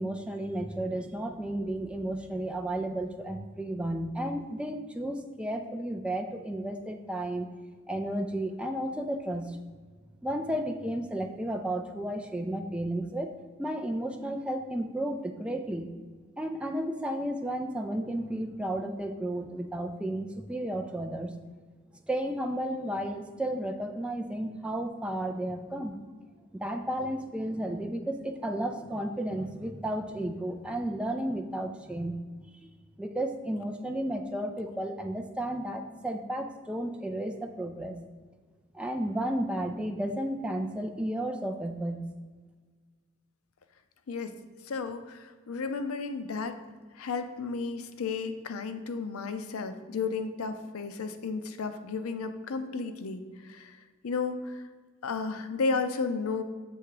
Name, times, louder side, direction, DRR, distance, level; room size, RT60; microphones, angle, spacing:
voice 1, 0.0-7.5 7.9-9.6 10.2-13.3 13.6-15.9 16.4-21.3 22.1-26.0 26.5-32.2 32.5-32.7 33.0-38.0 38.7-42.1, right 1 dB, 5° right, 4 dB, 0.3 m, -33 dB
voice 2, 44.6-46.6 46.9-54.6 55.0-56.4, left 4 dB, 85° left, 9 dB, 0.5 m, -33 dB
7.1 x 3.4 x 4.8 m, 1.5 s
head